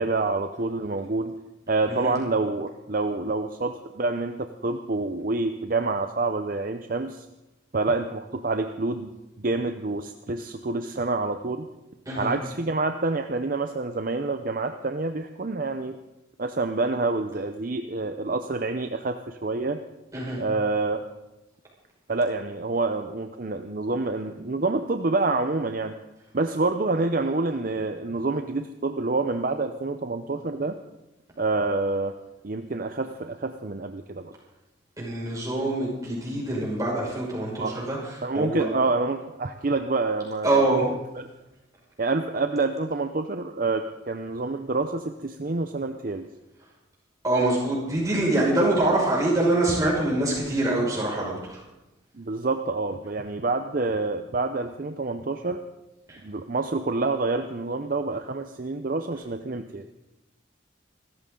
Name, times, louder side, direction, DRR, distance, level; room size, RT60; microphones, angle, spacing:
voice 1, 0.0-1.4 1.7-7.3 7.7-9.1 9.4-11.7 12.2-16.0 16.4-19.8 20.4-21.0 22.1-25.9 26.3-30.8 31.4-32.2 32.4-34.3 37.6-37.8 38.2-40.5 42.0-46.3 52.1-55.6 56.2-59.9, right 3 dB, 45° right, 7 dB, 0.6 m, -27 dB
voice 2, 35.0-38.7 40.4-40.9 47.2-51.6 56.1-56.2, right 2 dB, 20° right, -5 dB, 5.8 m, -25 dB
26.0 x 14.0 x 3.8 m, 0.99 s
head